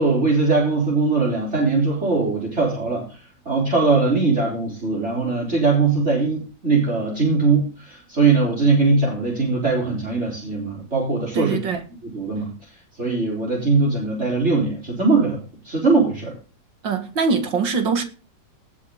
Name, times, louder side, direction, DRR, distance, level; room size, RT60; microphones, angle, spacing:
voice 1, 0.0-3.1 3.5-11.6 12.0-12.5 13.0-16.3, right 3 dB, 35° right, 4.2 m, -20 dB
voice 2, 11.3-11.8 16.8-18.0, right 5 dB, 85° right, 2.7 m, -22 dB
19.0 x 6.6 x 3.8 m
omnidirectional pair, 2.0 m